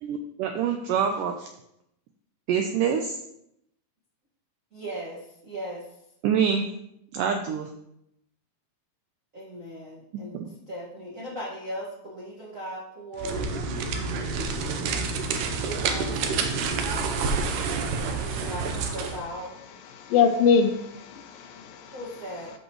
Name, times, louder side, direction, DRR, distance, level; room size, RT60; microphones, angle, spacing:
voice 1, 0.0-1.5 2.5-3.2 6.2-6.7 7.1-7.7 10.3-10.5, right 7 dB, 90° right, 4 dB, 1.8 m, -26 dB
voice 2, 4.7-5.8 9.3-10.4 10.7-13.4 15.5-16.8 18.1-18.6 18.9-19.5 21.9-22.5, equal, 40° right, -7 dB, 1.1 m, -38 dB
sound 1, 13.2-19.2, right 4 dB, 75° right, 2.1 m, -28 dB
voice 3, 19.9-21.9, left 6 dB, 75° left, 6 dB, 2.3 m, -23 dB
13.5 x 5.4 x 3.1 m, 0.78 s
omnidirectional pair, 4.4 m